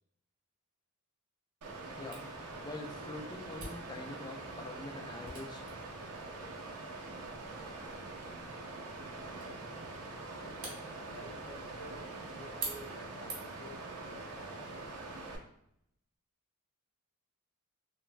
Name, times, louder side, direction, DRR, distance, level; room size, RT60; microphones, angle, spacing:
Water, 1.6-15.4, right 3 dB, 85° right, 0.5 m, -44 dB
Camera, 2.1-13.7, right 3 dB, 45° right, 0.9 m, -49 dB
voice 1, 2.6-5.9, left 2 dB, 20° left, 3 dB, 0.3 m, -45 dB
voice 2, 8.2-10.6 11.0-14.9, equal, 70° left, -1 dB, 0.8 m, -53 dB
3.1 x 2.1 x 2.4 m, 0.77 s
head